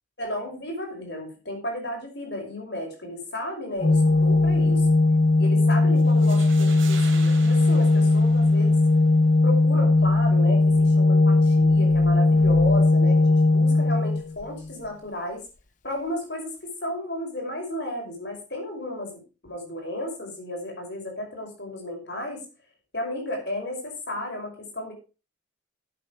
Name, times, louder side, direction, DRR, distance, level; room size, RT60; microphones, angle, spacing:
voice 1, 0.2-4.9 5.4-8.9 9.4-15.4 15.8-22.4 22.9-24.9, left 1 dB, 55° left, 2 dB, 5.4 m, -33 dB
Organ, 3.8-14.7, left 2 dB, 40° left, 0.9 m, -19 dB
sound 1, 6.0-9.0, right 7 dB, 80° right, 3.1 m, -43 dB
11.5 x 8.5 x 4.8 m, 0.32 s
head